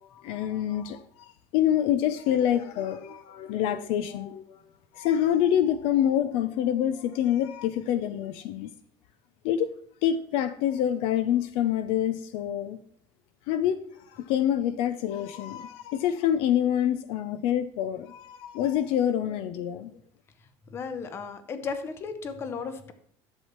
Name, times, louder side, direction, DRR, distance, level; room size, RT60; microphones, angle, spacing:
voice 1, 0.1-4.6 4.9-8.7 9.4-9.7 10.0-12.8 13.5-13.8 14.1-20.0, left 10 dB, 60° left, 12 dB, 0.5 m, -26 dB
voice 2, 20.7-22.9, left 5 dB, 25° left, 10 dB, 0.7 m, -35 dB
11.0 x 7.3 x 3.0 m, 0.63 s
cardioid pair, 180°, 11 cm